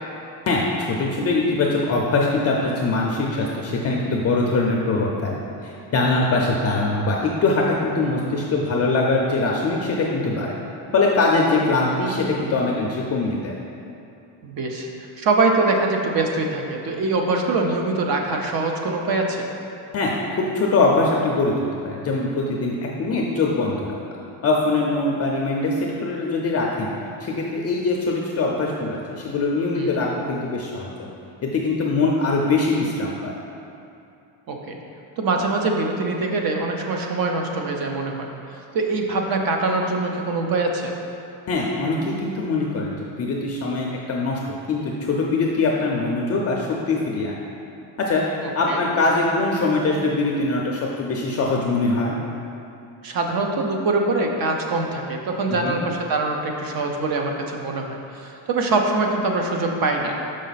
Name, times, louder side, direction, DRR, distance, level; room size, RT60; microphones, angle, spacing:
voice 1, 0.5-10.5 10.9-13.5 19.9-24.0 24.4-26.9 27.2-31.1 31.5-33.3 41.5-47.4 48.0-48.2 48.5-52.1 55.5-55.7, left 3 dB, 30° left, -2 dB, 0.5 m, -22 dB
voice 2, 14.4-14.9 15.2-19.5 29.7-29.9 34.5-34.8 35.2-38.3 38.7-40.9 48.4-48.8 53.0-60.2, right 3 dB, 50° right, 2 dB, 0.8 m, -23 dB
6.3 x 5.3 x 4.0 m, 2.7 s
cardioid pair, 150°, 47 cm